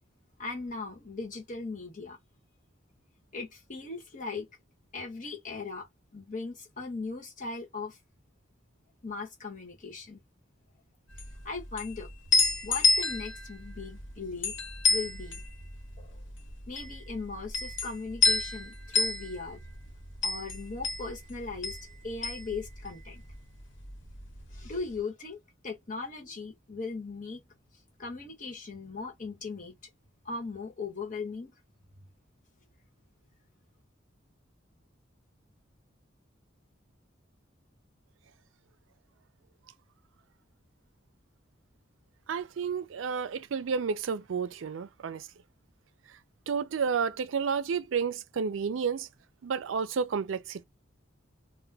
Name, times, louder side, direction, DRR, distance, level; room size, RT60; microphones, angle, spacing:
voice 1, 0.4-2.2 3.3-4.5 4.9-5.9 6.1-8.0 9.0-10.2 11.4-12.1 12.6-14.6 14.9-15.4 16.0-16.2 16.7-19.6 20.2-21.8 22.0-23.2 24.5-25.4 25.6-27.4 28.0-29.8 30.2-31.5, left 4 dB, 45° left, 1.2 m, -38 dB
sound 1, 11.1-23.4 23.6-24.7, left 4 dB, 75° left, 1.1 m, -30 dB
voice 2, 42.3-45.3 46.5-49.1 49.4-50.6, right 6 dB, 85° right, 0.4 m, -31 dB
2.2 x 2.2 x 3.3 m
head